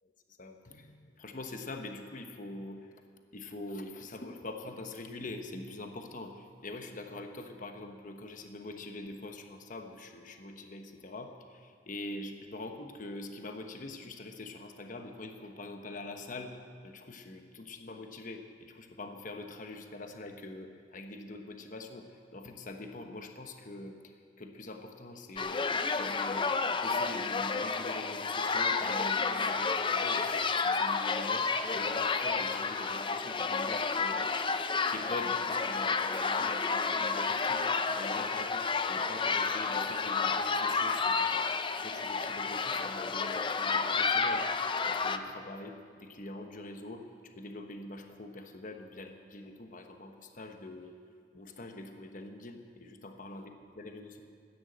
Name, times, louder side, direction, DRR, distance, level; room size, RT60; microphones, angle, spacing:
voice 1, 0.4-3.0 3.3-16.6 16.8-24.1 24.4-25.6 25.9-34.3 34.9-41.4 41.8-44.5 44.8-50.9 51.3-53.5 53.8-54.2, left 2 dB, 45° left, 5 dB, 1.1 m, -44 dB
sound 1, 25.4-45.2, left 4 dB, 25° left, 0.5 m, -30 dB
14.0 x 9.7 x 8.0 m, 2.2 s
head